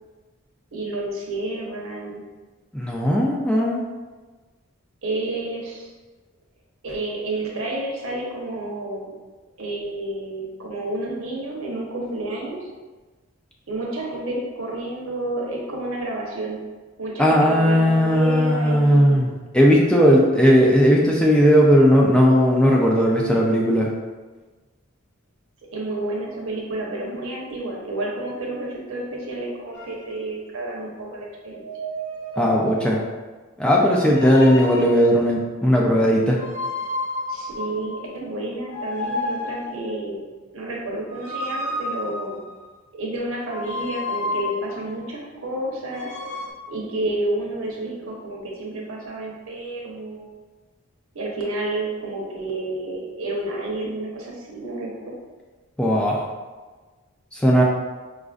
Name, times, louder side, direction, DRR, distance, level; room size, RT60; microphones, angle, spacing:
voice 1, 0.7-2.2 5.0-5.9 6.8-9.1 9.6-12.6 13.7-16.6 17.0-19.2 25.7-31.6 37.3-40.2 40.5-42.4 42.9-46.1 46.7-50.3 51.1-55.1, right 2 dB, 75° right, -3 dB, 0.9 m, -30 dB
voice 2, 2.7-3.8 17.2-23.9 32.4-33.0 33.6-36.4 55.8-56.2 57.3-57.6, equal, 5° left, -3 dB, 0.3 m, -17 dB
sound 1, 29.7-30.1 31.5-33.0 34.0-35.2 36.4-38.1 38.7-39.9 41.1-42.7 43.5-44.9 45.9-46.5, left 1 dB, 55° left, 0.6 m, -31 dB
5.0 x 2.5 x 2.4 m, 1.3 s
head